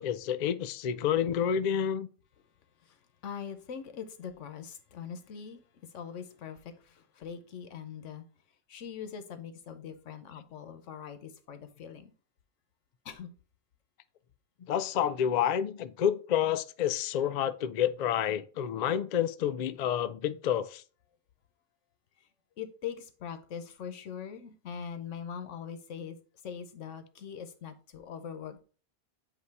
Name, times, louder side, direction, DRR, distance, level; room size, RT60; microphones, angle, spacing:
voice 1, 0.0-2.1 14.6-20.8, left 9 dB, 65° left, 0.4 m, -29 dB
voice 2, 2.8-8.2 8.7-12.1 13.0-13.3 22.2-22.3 22.6-26.2 26.4-28.6, left 7 dB, 90° left, 1.2 m, -42 dB
8.1 x 2.8 x 4.6 m
omnidirectional pair, 1.2 m